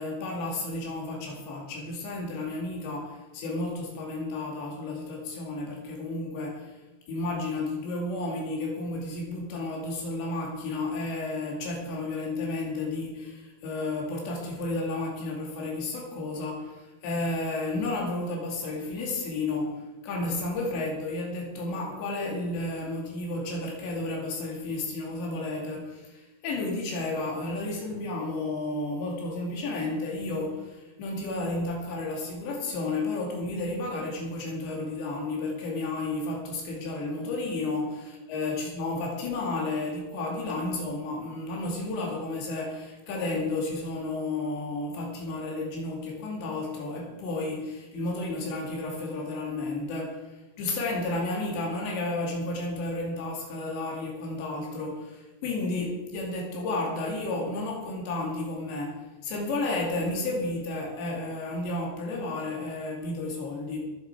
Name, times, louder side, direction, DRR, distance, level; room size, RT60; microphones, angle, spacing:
voice 1, 0.0-6.8 7.1-63.8, left 2 dB, 85° left, -1 dB, 4.7 m, -32 dB
22.5 x 7.8 x 4.8 m, 1.1 s
omnidirectional pair, 4.9 m